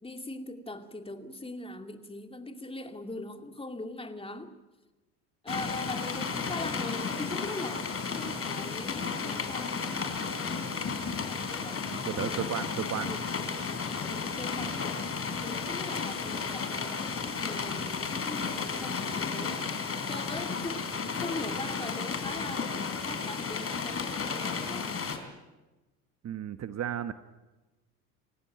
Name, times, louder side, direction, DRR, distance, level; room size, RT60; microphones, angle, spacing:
voice 1, 0.0-4.6 5.4-9.9 10.3-12.7 13.0-13.2 14.1-15.0 15.3-20.9 21.2-22.7 23.0-24.9, left 2 dB, 10° left, 6 dB, 2.4 m, -41 dB
sound 1, 5.5-25.2, left 5 dB, 30° left, 3.9 m, -33 dB
voice 2, 12.0-13.1 26.2-27.1, right 9 dB, 35° right, 11 dB, 1.1 m, -33 dB
28.5 x 15.5 x 9.2 m, 1.1 s
hypercardioid pair, 80°, 47 cm